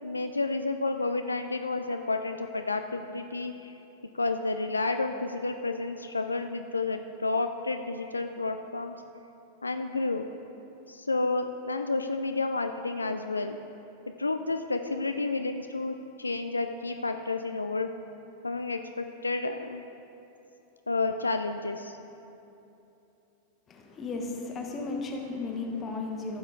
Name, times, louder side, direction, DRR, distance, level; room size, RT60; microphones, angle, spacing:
voice 1, 0.0-3.7 4.1-8.9 9.6-10.3 10.9-13.6 14.2-17.9 18.4-19.8 20.9-22.0, left 3 dB, 80° left, 7 dB, 0.3 m, -30 dB
voice 2, 23.7-26.4, left 3 dB, 25° left, 1 dB, 1.3 m, -35 dB
15.0 x 6.2 x 3.8 m, 2.9 s
figure-of-eight pair, 90°, 0 cm